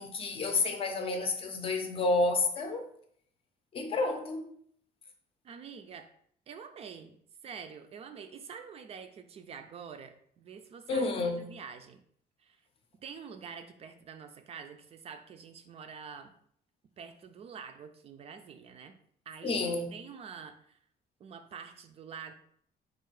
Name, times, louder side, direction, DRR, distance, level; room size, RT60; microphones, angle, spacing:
voice 1, 0.0-2.9 3.7-4.5 10.9-11.5 19.4-19.9, left 3 dB, 35° left, 0.6 m, -30 dB
voice 2, 5.4-6.1 6.5-7.2 7.4-12.0 12.4-12.6 13.0-16.3 17.0-19.0 19.3-19.6 19.9-20.8 21.2-22.3, right 6 dB, 40° right, 0.3 m, -46 dB
4.5 x 2.5 x 4.6 m
cardioid pair, 170°, 16 cm